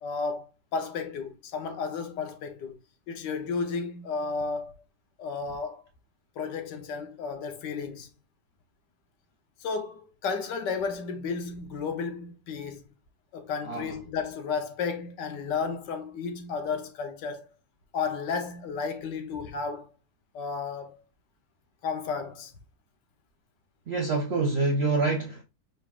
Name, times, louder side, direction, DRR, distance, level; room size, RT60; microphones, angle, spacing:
voice 1, 0.0-2.8 3.1-4.7 5.2-5.8 6.4-8.1 9.6-12.9 13.3-17.5 17.9-19.9 20.3-21.0 21.8-22.5, left 5 dB, 75° left, 1.4 m, -33 dB
voice 2, 23.9-25.4, right 3 dB, 60° right, 0.6 m, -26 dB
5.3 x 3.9 x 2.3 m
omnidirectional pair, 2.0 m